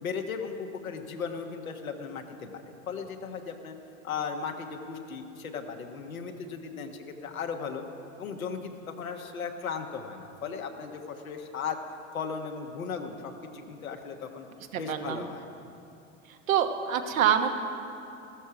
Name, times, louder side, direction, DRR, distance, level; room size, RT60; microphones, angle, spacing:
voice 1, 0.0-3.7 4.0-7.8 8.2-11.8 12.1-14.5 14.7-15.4, left 6 dB, 85° left, 4 dB, 1.4 m, -36 dB
voice 2, 14.7-15.2 16.5-17.5, right 9 dB, 75° right, 5 dB, 1.2 m, -26 dB
15.0 x 13.0 x 4.9 m, 2.7 s
hypercardioid pair, 85°, 41 cm